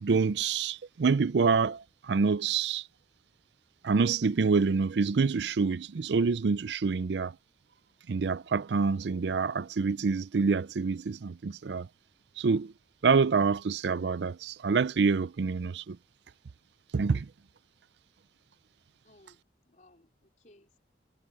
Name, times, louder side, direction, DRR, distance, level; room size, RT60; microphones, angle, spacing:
voice 1, 0.0-2.9 3.8-7.4 8.1-11.9 12.4-12.7 13.0-16.0 16.9-17.3, right 5 dB, 70° right, 0.5 m, -27 dB
voice 2, 19.0-20.8, left 1 dB, 45° left, 4.3 m, -61 dB
head